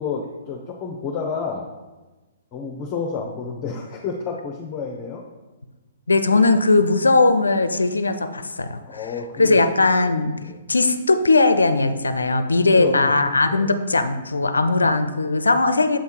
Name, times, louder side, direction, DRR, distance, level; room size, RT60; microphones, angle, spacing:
voice 1, 0.0-1.7 2.5-5.2 8.9-9.6 10.4-10.6 12.5-13.1 13.5-13.7, left 5 dB, 30° left, 0 dB, 0.7 m, -30 dB
voice 2, 6.1-8.8 9.4-10.3 10.7-16.0, left 3 dB, 80° left, 10 dB, 0.4 m, -19 dB
7.4 x 3.5 x 4.5 m, 1.1 s
figure-of-eight pair, 120°, 0 cm